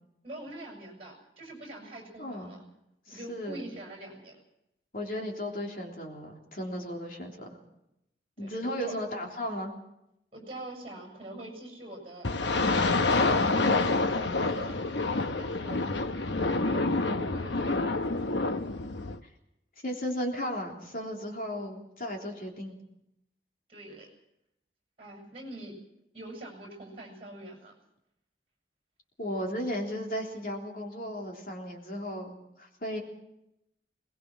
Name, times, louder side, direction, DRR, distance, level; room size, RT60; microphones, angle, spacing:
voice 1, 0.2-2.6 3.1-4.4 8.4-8.9 10.3-12.3 12.7-15.8 16.2-18.2 23.7-24.1 25.0-25.8 26.1-27.7, right 1 dB, 30° right, 2 dB, 7.4 m, -44 dB
voice 2, 2.2-2.5 3.1-3.6 4.9-7.5 8.4-9.7 19.2-19.3 19.8-22.8 29.2-33.0, equal, 50° left, 0 dB, 3.5 m, -35 dB
sound 1, 12.2-19.2, left 3 dB, 85° left, 1.0 m, -27 dB
22.0 x 20.5 x 6.2 m, 0.84 s
head